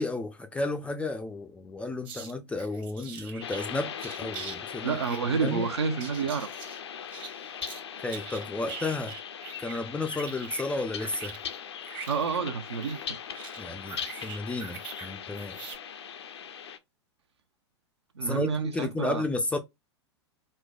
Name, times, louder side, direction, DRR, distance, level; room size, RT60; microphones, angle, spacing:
voice 1, 0.0-5.0 5.4-5.7 8.0-9.1 9.6-11.4 13.6-15.6 18.2-19.6, left 2 dB, 10° left, 0.4 m, -32 dB
sound 1, 2.0-2.3 2.6-3.7 4.0-4.6 4.8-7.8 8.1-9.8 10.1-15.1 15.4-15.8, right 6 dB, 35° right, 0.9 m, -43 dB
sound 2, 3.4-16.8, left 8 dB, 70° left, 0.5 m, -40 dB
voice 2, 4.8-6.5 12.1-13.2 18.1-19.2, right 5 dB, 70° right, 0.6 m, -29 dB
4.4 x 2.1 x 2.2 m
figure-of-eight pair, 95°, 15 cm